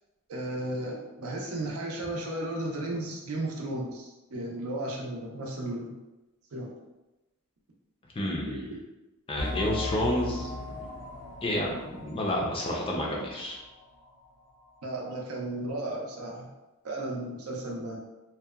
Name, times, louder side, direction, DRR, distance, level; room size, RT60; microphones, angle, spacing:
voice 1, 0.3-6.0 6.5-6.7 8.5-8.7 14.8-16.5 16.8-18.0, right 1 dB, 75° right, -1 dB, 0.5 m, -34 dB
voice 2, 8.2-8.6 9.3-10.8 11.4-13.6, left 1 dB, 25° left, -2 dB, 0.4 m, -30 dB
sound 1, 9.4-13.7 14.0-14.1 14.6-14.7, left 2 dB, 80° left, 0.6 m, -38 dB
2.7 x 2.1 x 2.3 m, 1.0 s
head